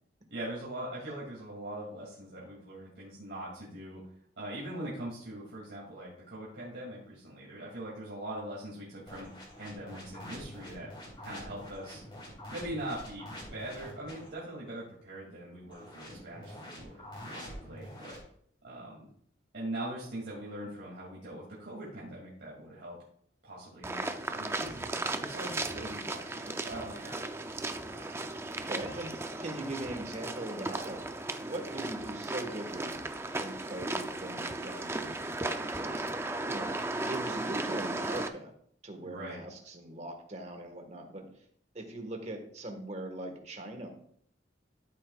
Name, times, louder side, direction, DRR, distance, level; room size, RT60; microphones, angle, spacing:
voice 1, 0.3-4.0 4.4-9.3 9.6-10.9 11.2-12.0 12.5-18.2 18.6-19.1 19.5-23.0 23.4-27.3 27.9-28.0 28.8-29.0 29.3-29.4 39.0-39.4, right 1 dB, 70° right, -6 dB, 2.7 m, -42 dB
sound 1, 9.1-14.3 15.7-18.2, equal, 25° left, 3.7 m, -46 dB
sound 2, 23.8-38.3, right 2 dB, 15° right, 0.5 m, -36 dB
voice 2, 28.5-31.0 31.4-33.0 33.4-36.7 37.1-38.5 38.8-41.3 41.7-43.9, right 1 dB, 40° right, 4 dB, 1.6 m, -41 dB
13.5 x 8.2 x 2.4 m, 0.64 s
head